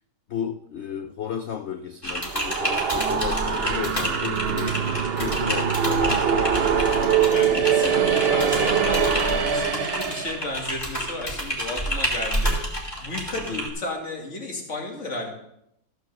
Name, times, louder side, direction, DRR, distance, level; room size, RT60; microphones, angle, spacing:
voice 1, 0.3-6.9 13.4-13.6, left 8 dB, 85° left, 8 dB, 0.6 m, -33 dB
Typing, 2.0-13.7, equal, 15° left, 2.6 m, -30 dB
sound 1, 2.1-10.5, right 7 dB, 50° right, 0.7 m, -23 dB
Bass guitar, 3.0-9.2, right 4 dB, 90° right, 1.9 m, -44 dB
voice 2, 7.3-15.3, left 2 dB, 40° left, 0 dB, 2.5 m, -33 dB
14.5 x 6.5 x 6.8 m, 0.79 s
omnidirectional pair, 1.9 m